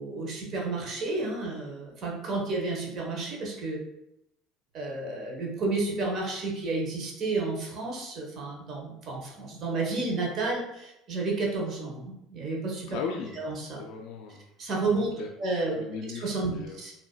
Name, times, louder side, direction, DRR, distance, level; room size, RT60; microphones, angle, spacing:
voice 1, 0.0-3.8 4.7-13.0 13.4-13.8 14.6-15.7 16.0-16.9, right 3 dB, 50° right, -1 dB, 1.2 m, -31 dB
voice 2, 12.9-13.4 13.8-14.4 14.9-15.3 15.8-16.8, left 5 dB, 65° left, 2 dB, 0.4 m, -37 dB
4.9 x 2.8 x 2.3 m, 0.84 s
hypercardioid pair, 70°, 0 cm